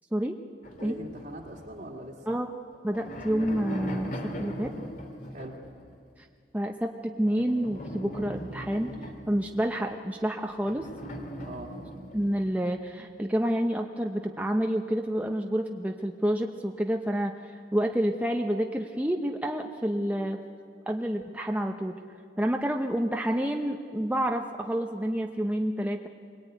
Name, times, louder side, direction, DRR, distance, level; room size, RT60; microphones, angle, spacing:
sound 1, 0.6-2.2 2.7-5.8 7.4-9.9 10.6-12.5, equal, 50° left, 2.6 m, -40 dB
voice 1, 0.8-2.3 5.3-5.6 11.4-11.7, right 1 dB, 50° right, -4 dB, 2.1 m, -41 dB
voice 2, 2.8-4.7 6.2-6.3 6.5-8.9 9.3-10.9 12.1-17.3 17.7-20.4 20.9-21.9 22.4-26.1, equal, 10° right, 2 dB, 0.8 m, -28 dB
23.5 x 20.5 x 9.2 m, 2.3 s
head